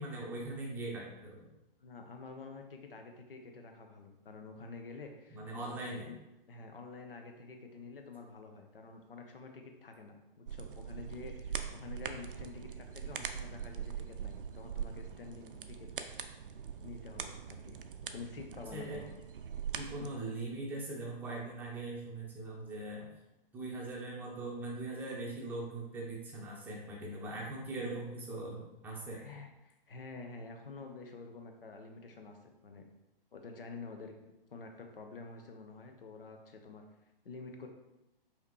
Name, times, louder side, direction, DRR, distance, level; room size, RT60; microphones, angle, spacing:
voice 1, 0.0-1.5 5.3-6.2 18.7-19.0 19.7-23.1 23.5-29.2, right 2 dB, 5° right, -4 dB, 0.7 m, -41 dB
voice 2, 1.8-6.1 6.5-15.9 16.8-17.8 18.1-19.1 20.0-20.1 29.2-32.4 32.6-32.9 33.3-34.1 34.5-36.8 37.2-37.7, left 4 dB, 70° left, 4 dB, 0.8 m, -48 dB
sound 1, 10.5-20.1, right 7 dB, 65° right, 0.5 m, -42 dB
4.9 x 2.8 x 3.1 m, 0.95 s
figure-of-eight pair, 125°, 29 cm